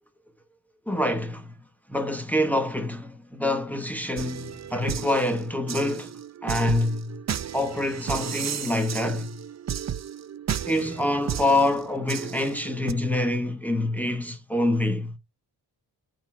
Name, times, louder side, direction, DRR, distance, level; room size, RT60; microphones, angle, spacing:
voice 1, 0.9-1.5 1.9-7.2 7.5-9.3 10.6-15.1, left 1 dB, 5° left, 1.1 m, -26 dB
sound 1, 4.2-12.9, right 9 dB, 40° right, 0.5 m, -34 dB
9.3 x 3.9 x 5.9 m
wide cardioid pair, 170°, 42 cm